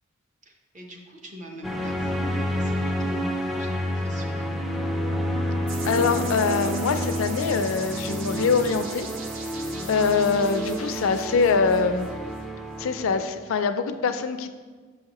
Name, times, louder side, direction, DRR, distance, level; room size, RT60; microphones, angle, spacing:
voice 1, 0.4-4.6 9.7-10.1, equal, 35° right, 2 dB, 0.7 m, -42 dB
sound 1, 1.6-13.2, equal, ahead, 0.3 m, -29 dB
sound 2, 5.7-12.4, right 4 dB, 75° right, 0.7 m, -40 dB
voice 2, 5.8-9.1 9.9-12.1 12.8-14.5, left 5 dB, 85° left, 9 dB, 0.4 m, -23 dB
6.1 x 5.6 x 2.9 m, 1.5 s
head